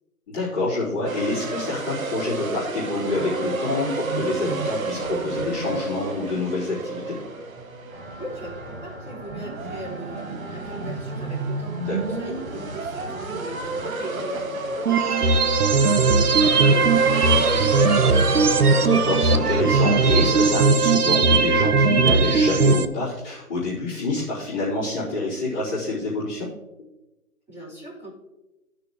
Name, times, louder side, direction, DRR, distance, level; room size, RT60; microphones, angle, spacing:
voice 1, 0.3-7.2 11.9-12.2 18.8-26.5, left 2 dB, 20° left, -11 dB, 3.5 m, -27 dB
sound 1, 1.1-20.6, right 3 dB, 65° right, 1.3 m, -30 dB
sound 2, 7.9-13.8, right 1 dB, 45° right, 2.4 m, -41 dB
voice 2, 8.2-18.4 27.5-28.1, right 1 dB, 5° right, -12 dB, 3.9 m, -39 dB
sound 3, 14.9-22.9, right 4 dB, 85° right, 0.9 m, -18 dB
16.0 x 6.8 x 3.0 m, 1.0 s
figure-of-eight pair, 155°, 45 cm